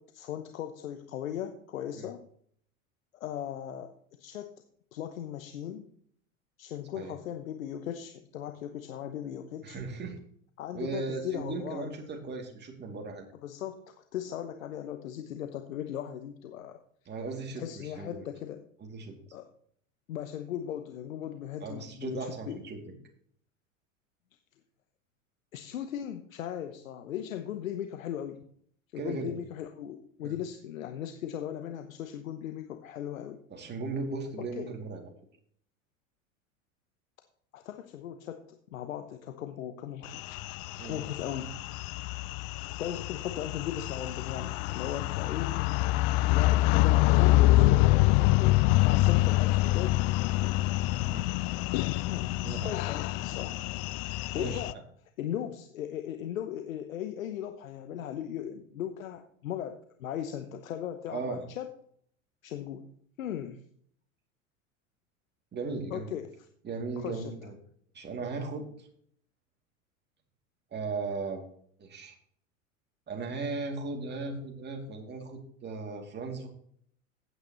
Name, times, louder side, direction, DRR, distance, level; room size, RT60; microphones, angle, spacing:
voice 1, 0.0-2.3 3.1-3.9 4.2-4.5 4.9-5.8 6.6-9.8 10.6-11.9 13.4-16.8 17.6-18.6 19.3-19.5 20.1-22.6 25.5-28.4 28.9-33.4 34.4-34.7 37.5-40.4 40.8-41.5 42.8-45.5 46.3-50.0 52.0-53.6 54.3-54.8 55.2-61.7 62.4-62.9 63.2-63.6 65.9-66.3 67.0-67.4, left 10 dB, 75° left, 8 dB, 1.0 m, -38 dB
voice 2, 9.6-10.2 10.7-13.3 17.1-18.2 18.8-19.1 21.6-22.8 29.0-29.3 30.2-30.3 33.5-35.0 40.8-41.0 51.0-51.3 52.4-52.7 54.3-54.6 61.1-61.4 65.5-66.2 66.6-67.5 67.9-68.9 70.7-71.5 71.8-72.2 73.1-76.5, right 3 dB, 25° right, 1 dB, 2.7 m, -37 dB
sound 1, 40.1-54.7, left 18 dB, 45° left, 0.5 m, -26 dB
14.5 x 9.2 x 3.0 m, 0.64 s
hypercardioid pair, 85°, 41 cm